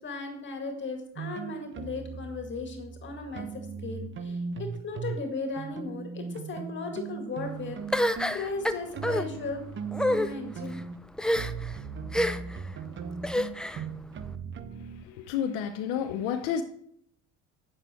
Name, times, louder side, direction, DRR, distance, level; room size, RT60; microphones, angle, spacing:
voice 1, 0.0-9.6 10.1-10.8, left 3 dB, 40° left, 4 dB, 2.1 m, -37 dB
sound 1, 1.2-5.2 5.6-15.1, right 5 dB, 40° right, 1.0 m, -38 dB
sound 2, 7.9-9.2 9.9-10.3 11.2-11.7 12.1-12.6 13.2-13.8, left 1 dB, 5° left, 0.5 m, -27 dB
voice 2, 15.1-16.6, left 8 dB, 80° left, 7 dB, 0.7 m, -30 dB
8.7 x 7.6 x 4.4 m, 0.68 s
supercardioid pair, 85°, 30 cm